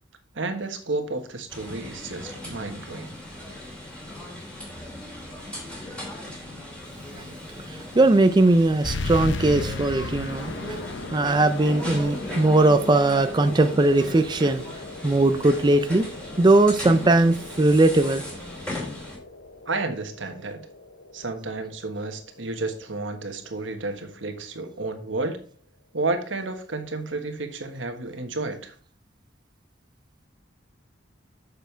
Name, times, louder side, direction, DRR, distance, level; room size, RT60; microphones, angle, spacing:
voice 1, 0.3-3.2 19.6-20.6 21.1-25.4 25.9-28.7, right 3 dB, 80° right, 6 dB, 1.4 m, -31 dB
sound 1, 1.5-19.2, left 1 dB, 5° left, 2.9 m, -38 dB
voice 2, 7.9-10.8 11.1-14.6 15.0-16.1 16.4-18.2, right 2 dB, 25° right, 8 dB, 0.5 m, -19 dB
sound 2, 8.8-23.9, left 3 dB, 70° left, 0.8 m, -37 dB
7.0 x 6.6 x 4.5 m, 0.43 s
head